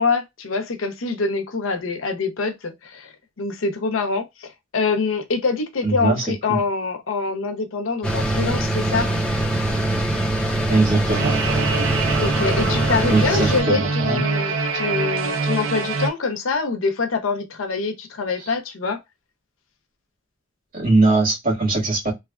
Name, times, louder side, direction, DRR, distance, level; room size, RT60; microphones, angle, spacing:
voice 1, 0.0-3.1 3.4-9.1 12.2-19.0, left 4 dB, 90° left, 0.6 m, -25 dB
voice 2, 5.8-6.6 10.7-11.3 13.1-14.2 18.4-18.5 20.7-22.1, right 2 dB, 45° right, 1.5 m, -21 dB
sound 1, 8.0-13.6, right 1 dB, 5° left, 0.7 m, -23 dB
sound 2, 11.1-16.1, right 4 dB, 75° right, 0.5 m, -24 dB
3.2 x 2.3 x 2.2 m
head